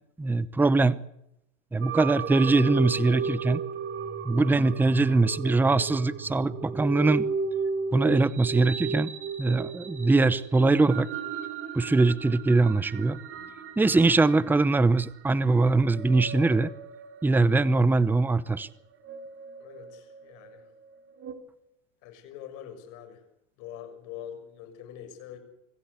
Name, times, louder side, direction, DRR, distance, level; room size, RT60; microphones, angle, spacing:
voice 1, 0.2-1.0 1.7-3.6 4.3-7.3 7.9-9.1 9.4-11.1 11.7-13.2 13.8-16.7 17.2-18.7, right 3 dB, 5° right, 17 dB, 0.8 m, -22 dB
sound 1, 1.8-21.3, right 6 dB, 35° right, 3.4 m, -36 dB
voice 2, 19.6-20.7 22.0-23.2 23.6-25.4, left 10 dB, 55° left, 8 dB, 6.7 m, -44 dB
25.5 x 15.0 x 8.2 m, 0.80 s
supercardioid pair, 120°, 38 cm